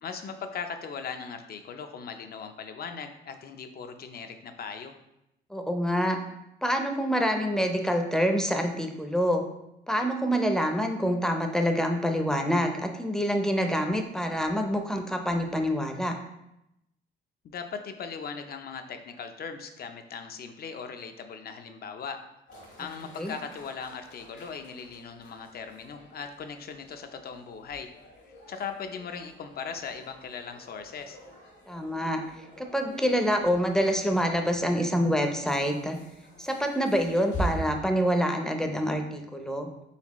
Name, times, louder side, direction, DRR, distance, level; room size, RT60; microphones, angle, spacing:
voice 1, 0.0-4.9 17.4-22.2 22.8-27.9 28.3-31.2, left 6 dB, 50° left, 7 dB, 0.5 m, -39 dB
voice 2, 5.5-6.2 6.6-9.4 9.9-16.1 23.2-23.3 31.7-32.2 32.6-36.0 36.4-39.7, equal, 5° left, 3 dB, 0.5 m, -26 dB
sound 1, 22.5-37.8, right 1 dB, 70° left, 1.5 m, -43 dB
4.2 x 3.8 x 3.0 m, 0.85 s
cardioid pair, 90°, 20 cm